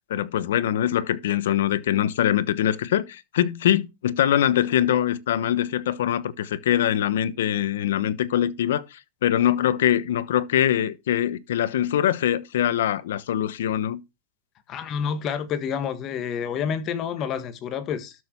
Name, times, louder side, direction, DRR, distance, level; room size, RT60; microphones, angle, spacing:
voice 1, 0.1-14.0, left 11 dB, 75° left, 1.0 m, -23 dB
voice 2, 14.7-18.1, left 7 dB, 30° left, 1.7 m, -28 dB
12.5 x 6.4 x 4.6 m
supercardioid pair, 145°, 0 cm